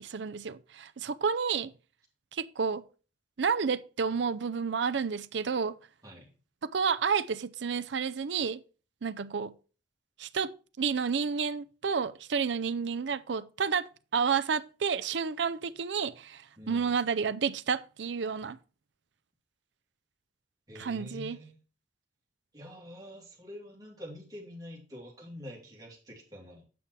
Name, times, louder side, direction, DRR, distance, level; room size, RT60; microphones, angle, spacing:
voice 1, 0.0-1.7 2.3-2.8 3.4-5.8 6.6-8.6 9.0-9.5 10.2-10.5 10.8-18.6 20.8-21.4, right 6 dB, 70° right, 0.5 m, -30 dB
voice 2, 16.6-16.9 20.7-21.6 22.5-26.6, left 1 dB, 20° right, 2.8 m, -46 dB
8.6 x 5.7 x 4.7 m
head